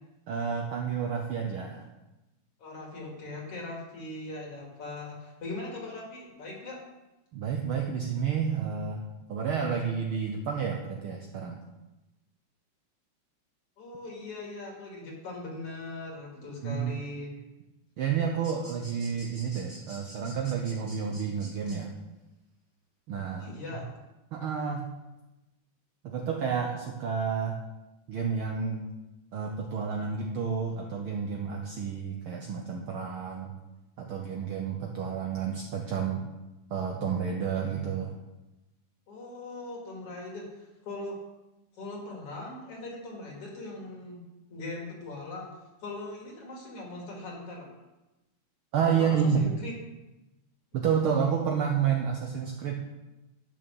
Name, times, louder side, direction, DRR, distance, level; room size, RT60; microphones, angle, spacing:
voice 1, 0.3-1.9 7.3-11.6 16.6-16.9 18.0-21.9 23.1-23.5 24.3-24.8 26.0-27.6 28.1-28.9 29.3-33.6 34.0-36.3 36.7-38.1 48.7-49.4 50.7-52.8, right 7 dB, 90° right, 2 dB, 1.1 m, -30 dB
voice 2, 2.6-6.8 13.8-17.3 23.4-23.9 39.1-41.2 41.7-44.2 44.5-45.5 45.8-47.8 49.0-49.7, left 2 dB, 50° left, -1 dB, 2.9 m, -40 dB
sound 1, 18.4-21.8, right 1 dB, 15° right, 1.9 m, -48 dB
11.0 x 6.2 x 6.2 m, 1.0 s
omnidirectional pair, 3.6 m